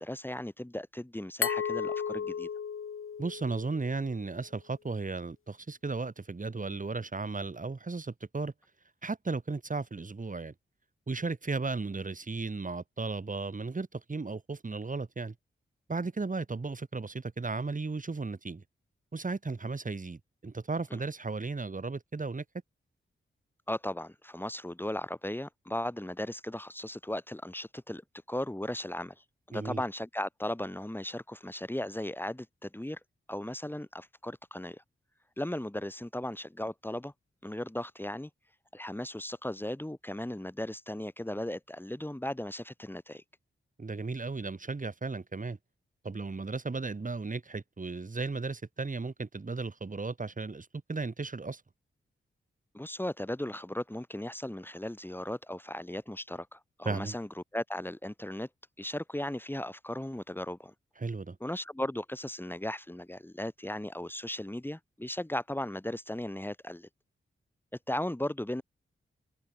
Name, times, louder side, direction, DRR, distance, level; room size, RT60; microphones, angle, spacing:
voice 1, 0.0-2.5 20.9-21.0 23.7-28.0 28.3-33.0 33.3-34.8 35.4-37.1 37.4-38.3 38.7-43.2 52.7-58.5 58.8-60.7 61.4-66.9 67.9-68.6, left 1 dB, 10° left, 4.8 m, -37 dB
Glass, 1.4-4.2, left 7 dB, 80° left, 7.3 m, -34 dB
voice 2, 3.2-8.5 9.0-10.5 11.1-15.3 15.9-18.6 19.1-22.4 29.5-29.8 43.8-45.6 46.0-51.6 56.8-57.2 61.0-61.4, right 3 dB, 40° right, 7.2 m, -35 dB
wide cardioid pair, 80°, 21 cm